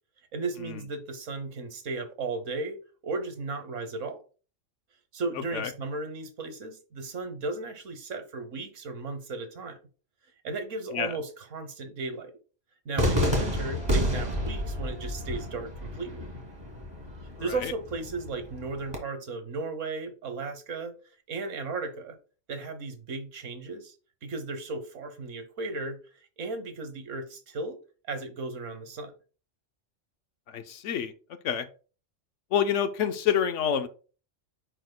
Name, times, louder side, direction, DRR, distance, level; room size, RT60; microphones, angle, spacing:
voice 1, 0.3-2.8 3.0-4.2 5.1-9.8 10.4-12.3 12.8-16.2 17.4-20.9 21.3-22.2 22.5-23.9 24.2-27.8 28.1-29.1, right 3 dB, 80° right, 1.4 m, -35 dB
Cheering / Fireworks, 13.0-19.0, equal, 20° right, 1.8 m, -30 dB
voice 2, 17.4-17.7 30.5-31.1 31.4-31.7 32.5-33.9, left 8 dB, 75° left, 1.0 m, -27 dB
10.0 x 4.4 x 2.2 m
omnidirectional pair, 1.3 m